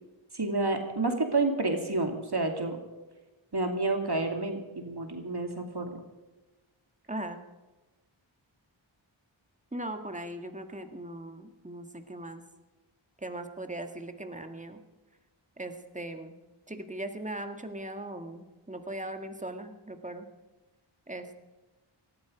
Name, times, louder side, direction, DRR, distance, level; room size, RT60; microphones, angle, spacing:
voice 1, 0.3-2.8 3.5-6.0, right 2 dB, 50° right, 4 dB, 2.5 m, -29 dB
voice 2, 7.1-7.4 9.7-12.4 13.2-14.8 15.6-16.4 16.7-20.3 21.1-21.4, right 1 dB, 15° right, 6 dB, 1.8 m, -39 dB
19.0 x 14.0 x 5.1 m, 1.2 s
wide cardioid pair, 40°, 48 cm